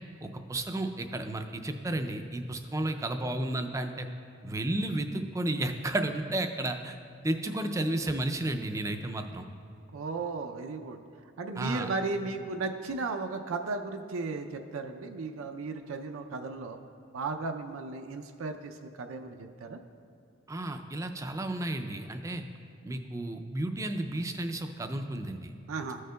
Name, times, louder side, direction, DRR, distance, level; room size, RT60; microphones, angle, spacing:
voice 1, 0.2-4.1 4.4-7.0 7.2-9.4 11.6-11.9 20.5-22.4 22.8-25.5, right 1 dB, 15° right, 7 dB, 0.3 m, -32 dB
voice 2, 9.9-11.0 11.4-16.8 17.1-19.8 25.7-26.0, right 3 dB, 85° right, 5 dB, 0.5 m, -35 dB
14.5 x 6.4 x 2.2 m, 2.5 s
head